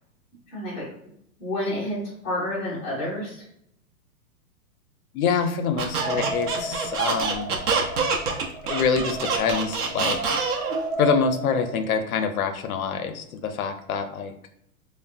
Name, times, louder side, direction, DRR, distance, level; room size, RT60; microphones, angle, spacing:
voice 1, 0.5-0.9 1.4-2.0 2.2-3.4, left 1 dB, 10° left, -10 dB, 0.4 m, -29 dB
voice 2, 5.1-7.5 8.7-10.2 11.0-14.3, left 6 dB, 65° left, 7 dB, 0.5 m, -25 dB
Squeak, 5.8-10.8, right 5 dB, 75° right, 0.7 m, -26 dB
sound 1, 6.0-11.7, right 2 dB, 40° right, 0.8 m, -33 dB
3.0 x 2.1 x 2.4 m, 0.73 s
hypercardioid pair, 165°, 46 cm